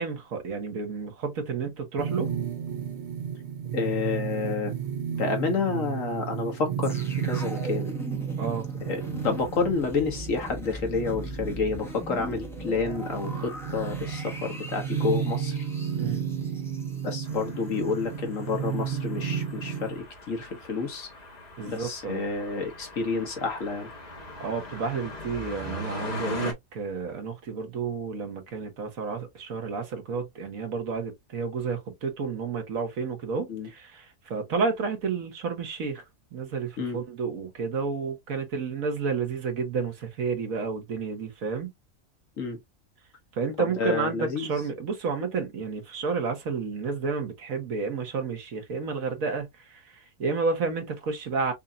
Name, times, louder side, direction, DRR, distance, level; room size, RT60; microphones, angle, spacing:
voice 1, 0.0-2.3 8.4-8.7 16.0-16.2 21.6-22.2 24.4-36.0 36.3-41.7 43.3-51.5, right 5 dB, 85° right, 1.7 m, -31 dB
sound 1, 2.0-20.0, right 8 dB, 60° right, 1.0 m, -33 dB
voice 2, 3.7-4.7 5.2-7.9 8.9-15.7 17.0-21.1 21.6-23.9 33.5-33.7 36.8-37.0 42.4-42.6 43.6-44.5, left 4 dB, 75° left, 1.6 m, -29 dB
sound 2, 6.8-18.0 18.3-18.5, left 1 dB, ahead, 1.0 m, -41 dB
sound 3, 17.2-26.5, left 2 dB, 30° left, 1.3 m, -40 dB
5.5 x 2.6 x 2.3 m
omnidirectional pair, 1.4 m